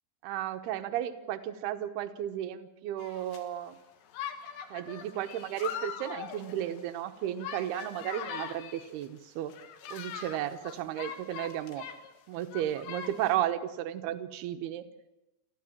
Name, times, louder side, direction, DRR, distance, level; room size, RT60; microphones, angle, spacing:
voice 1, 0.2-3.8 4.7-9.5 9.9-11.9 12.3-14.8, right 11 dB, 75° right, 8 dB, 2.5 m, -34 dB
sound 1, 3.0-3.4 4.1-9.0 9.5-12.1 12.4-13.4, left 8 dB, 70° left, 3.6 m, -41 dB
28.0 x 14.5 x 7.4 m, 1.0 s
omnidirectional pair, 5.8 m